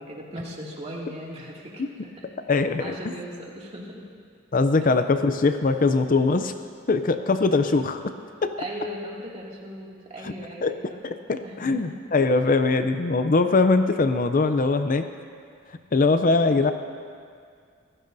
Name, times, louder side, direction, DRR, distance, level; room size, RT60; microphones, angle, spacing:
voice 1, 0.0-2.5 2.8-4.0 4.8-4.9 8.6-11.0 11.4-11.9, equal, 30° right, -4 dB, 2.4 m, -38 dB
voice 2, 2.5-3.0 4.5-6.5 6.9-8.0 8.4-8.6 10.2-10.3 10.6-10.7 11.0-15.0 15.9-16.7, left 3 dB, 40° left, 9 dB, 0.5 m, -21 dB
26.0 x 15.5 x 2.7 m, 2.2 s
head